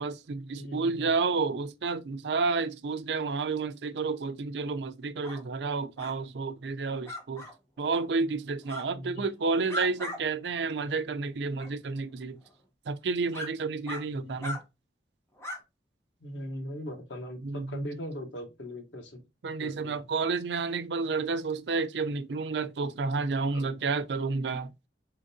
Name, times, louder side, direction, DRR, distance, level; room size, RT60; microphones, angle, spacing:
voice 1, 0.0-7.5 7.8-12.4 12.9-14.6 17.4-17.8 19.4-24.7, right 4 dB, 70° right, 0.5 m, -30 dB
voice 2, 0.5-1.1 8.9-9.2 14.1-14.5 16.2-19.2 19.6-20.0 23.5-23.7, equal, 85° left, 1.1 m, -40 dB
sound 1, 5.2-5.4 6.0-6.2 7.0-7.5 8.6-8.9 9.4-10.2 10.6-10.7 11.5-11.7 12.5-12.6 13.3-13.5 13.9-14.0 14.4-14.6 15.4-15.6, left 1 dB, 15° left, 0.9 m, -38 dB
4.3 x 3.7 x 2.7 m
head